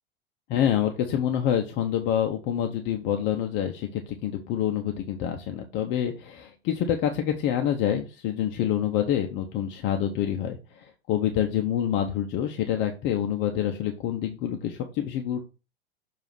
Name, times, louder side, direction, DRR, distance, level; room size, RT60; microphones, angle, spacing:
voice 1, 0.5-15.4, left 10 dB, 40° left, 4 dB, 0.8 m, -27 dB
6.9 x 2.8 x 5.8 m, 0.32 s
figure-of-eight pair, 85°, 29 cm